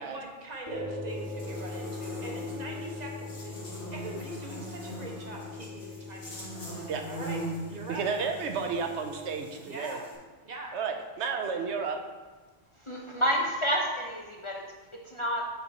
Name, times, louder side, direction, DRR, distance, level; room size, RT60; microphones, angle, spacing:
voice 1, 0.0-3.6 3.9-6.4 7.0-7.4 7.7-8.0 9.6-10.0 10.4-10.7, right 1 dB, 40° right, 0 dB, 1.2 m, -42 dB
sound 1, 0.7-9.4, left 2 dB, 15° left, 2.0 m, -41 dB
Buzz, 1.1-10.1, right 1 dB, 85° left, 2.2 m, -42 dB
voice 2, 7.9-10.0 10.7-12.0, right 5 dB, 75° right, 5 dB, 1.0 m, -32 dB
voice 3, 12.9-14.6 15.1-15.4, equal, 35° left, -1 dB, 0.6 m, -29 dB
8.0 x 4.4 x 4.1 m, 1.3 s
omnidirectional pair, 1.2 m